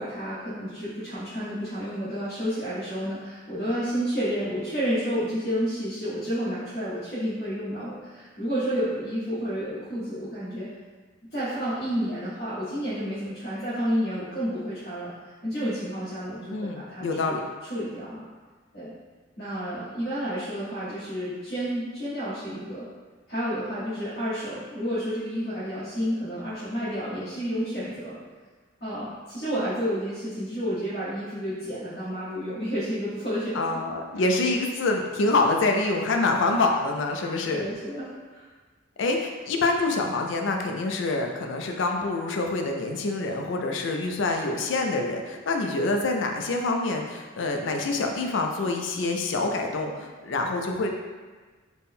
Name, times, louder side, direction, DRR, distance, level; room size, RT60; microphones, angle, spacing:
voice 1, 0.0-10.7 11.3-15.1 15.4-17.4 17.6-18.2 18.7-18.9 19.4-22.9 23.3-28.1 28.8-33.6 34.1-34.3 37.5-38.5, equal, 50° left, -15 dB, 1.3 m, -30 dB
voice 2, 16.5-17.4 33.5-37.7 39.0-50.9, left 3 dB, 65° left, 2 dB, 0.4 m, -26 dB
4.1 x 2.2 x 3.5 m, 1.4 s
head